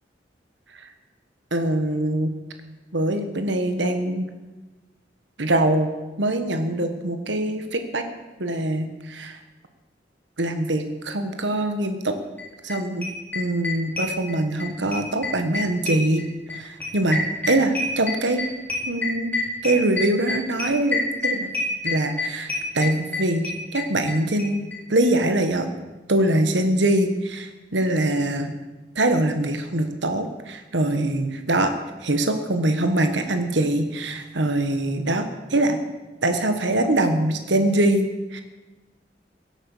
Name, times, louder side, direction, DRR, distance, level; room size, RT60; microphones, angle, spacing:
voice 1, 1.5-2.3 2.9-4.2 5.4-5.9 6.2-8.0 8.4-9.4 10.4-12.2 12.6-13.1 13.3-16.2 16.5-18.4 18.9-19.3 19.6-21.5 21.8-24.6 24.9-25.7 26.1-28.5 28.9-31.7 32.0-35.8 36.2-38.4, right 1 dB, 85° right, 7 dB, 1.4 m, -23 dB
sound 1, 12.4-12.5 12.7-12.8 13.0-14.7 14.9-24.1 24.4-24.5 24.7-24.8 25.0-25.1, left 3 dB, 10° left, 4.0 m, -27 dB
16.5 x 9.0 x 7.3 m, 1.1 s
head